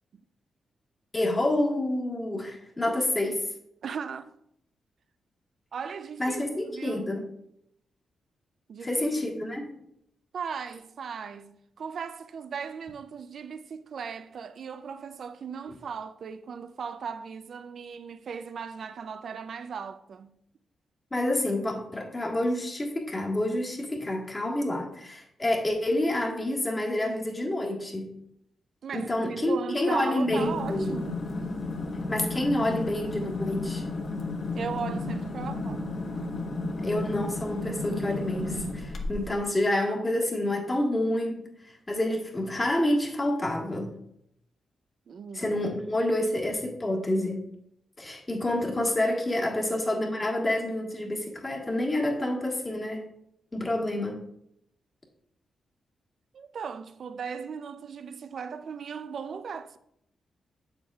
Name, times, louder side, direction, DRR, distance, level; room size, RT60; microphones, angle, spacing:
voice 1, 1.1-3.4 6.2-7.2 8.8-9.8 21.1-28.1 28.9-30.9 32.1-33.8 36.8-43.9 45.3-47.4 48.0-53.0 53.5-54.2, left 1 dB, 20° left, 1.5 m, -28 dB
voice 2, 3.8-4.4 5.7-7.2 8.7-9.5 10.3-20.4 28.8-31.4 34.5-36.1 45.1-45.5 49.5-49.7 56.3-59.8, right 6 dB, 60° right, 0.4 m, -37 dB
sound 1, 30.2-39.4, left 2 dB, 60° left, 1.1 m, -33 dB
7.9 x 7.2 x 2.3 m
cardioid pair, 115°, 0 cm